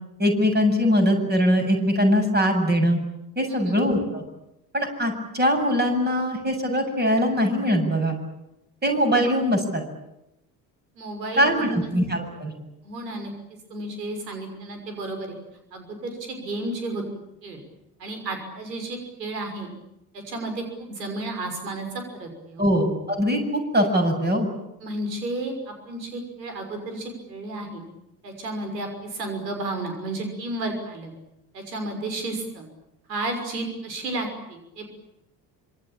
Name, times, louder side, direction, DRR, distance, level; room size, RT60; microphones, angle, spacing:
voice 1, 0.2-3.0 3.4-4.2 4.7-8.2 8.8-9.8 11.4-12.5 22.6-24.5, equal, 20° right, 4 dB, 7.6 m, -22 dB
voice 2, 11.0-11.9 12.8-13.3 13.7-15.4 15.7-17.0 17.4-17.6 18.0-19.7 20.1-22.7 24.8-27.8 28.2-31.1 31.5-32.7 33.1-34.9, right 2 dB, 75° right, 5 dB, 6.1 m, -32 dB
26.5 x 25.0 x 8.8 m, 0.87 s
figure-of-eight pair, 60°, 50 cm